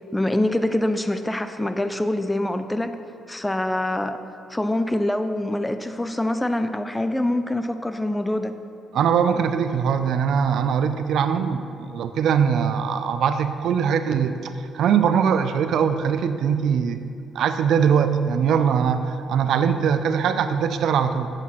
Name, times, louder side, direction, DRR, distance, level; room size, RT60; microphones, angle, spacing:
voice 1, 0.1-3.0 3.3-4.2 4.5-8.5, left 1 dB, 10° left, 9 dB, 0.6 m, -25 dB
voice 2, 8.9-17.1 17.3-21.3, right 7 dB, 75° right, 10 dB, 0.6 m, -21 dB
10.0 x 7.9 x 5.9 m, 2.6 s
cardioid pair, 90°, 0 cm